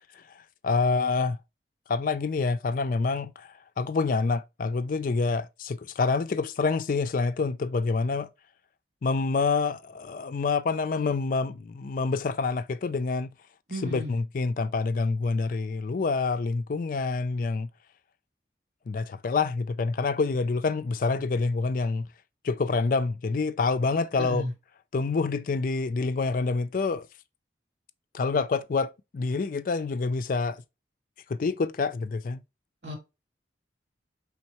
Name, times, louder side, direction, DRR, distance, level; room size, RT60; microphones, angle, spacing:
voice 1, 0.1-1.4 1.9-8.3 9.0-13.3 13.8-17.7 18.9-22.1 22.4-24.5 24.9-27.1 28.1-30.6 31.3-32.4, left 4 dB, 50° left, 0.4 m, -27 dB
voice 2, 13.7-14.1 24.2-24.5 32.8-33.0, left 1 dB, 70° right, 1.9 m, -33 dB
4.5 x 3.5 x 2.9 m
head